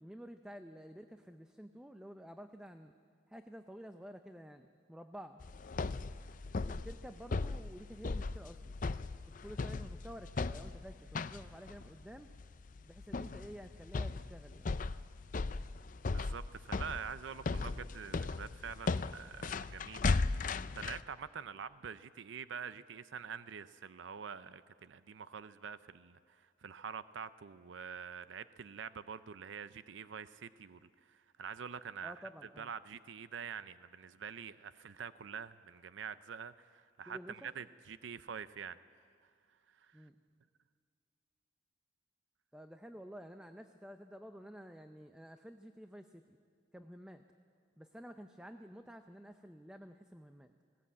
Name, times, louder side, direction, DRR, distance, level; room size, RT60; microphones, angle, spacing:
voice 1, 0.0-2.9 3.3-5.4 6.6-8.7 9.4-12.3 12.8-14.8 32.0-32.7 37.1-37.5 39.9-40.1 42.5-46.4 46.7-47.2 47.8-50.5, equal, 5° right, 7 dB, 0.5 m, -51 dB
sound 1, 5.4-21.0, left 3 dB, 45° left, 0.4 m, -37 dB
voice 2, 16.1-32.2 32.6-38.8 39.7-40.1, right 6 dB, 75° right, 14 dB, 0.5 m, -46 dB
19.5 x 17.5 x 8.5 m, 2.1 s
head